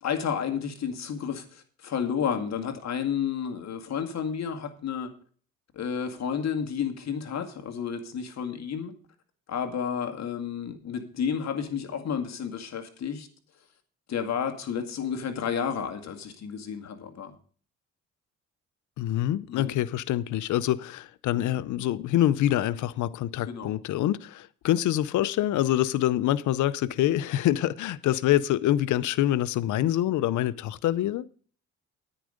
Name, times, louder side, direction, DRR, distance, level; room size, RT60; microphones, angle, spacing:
voice 1, 0.0-5.1 5.7-8.9 9.5-13.3 14.1-17.3 19.5-19.7 23.4-23.7, left 7 dB, 60° left, 2.0 m, -31 dB
voice 2, 19.0-31.3, left 13 dB, 75° left, 0.7 m, -25 dB
10.0 x 9.7 x 5.1 m
cardioid pair, 90°, 30 cm